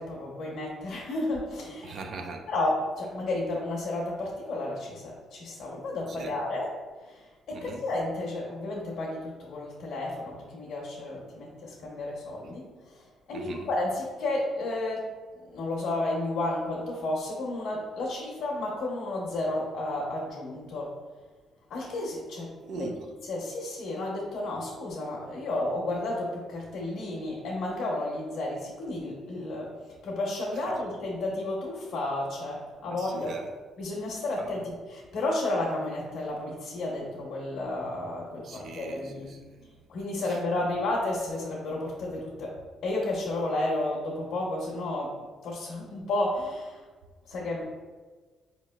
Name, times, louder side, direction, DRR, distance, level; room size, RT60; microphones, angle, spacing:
voice 1, 0.0-2.0 2.5-6.7 7.1-12.7 13.3-15.0 15.4-20.9 21.7-22.9 23.3-29.7 30.0-33.3 33.8-39.3 39.9-42.6 42.8-45.1 45.4-46.8 47.3-47.6, left 2 dB, 75° left, 0.7 m, -32 dB
voice 2, 1.8-2.5 6.1-6.4 7.5-7.8 13.3-13.7 22.6-23.1 32.9-33.5 34.4-34.7 38.4-39.7 40.2-40.6, right 3 dB, 60° right, 0.5 m, -41 dB
4.7 x 2.9 x 2.2 m
cardioid pair, 90°, 0 cm